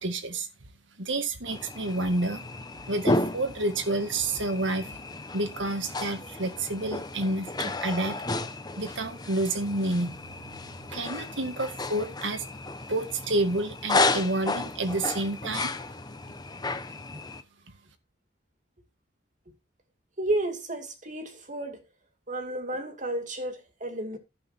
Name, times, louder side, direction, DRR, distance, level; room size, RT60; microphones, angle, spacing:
voice 1, 0.0-0.5 1.0-2.5 2.9-5.0 5.3-8.2 8.8-10.6 10.9-12.4 12.9-15.7, right 2 dB, 75° right, 1.9 m, -29 dB
sound 1, 1.5-17.4, left 2 dB, 20° left, 0.9 m, -33 dB
voice 2, 20.2-21.8 22.3-24.2, right 1 dB, 40° right, 2.4 m, -32 dB
11.5 x 7.7 x 4.3 m
head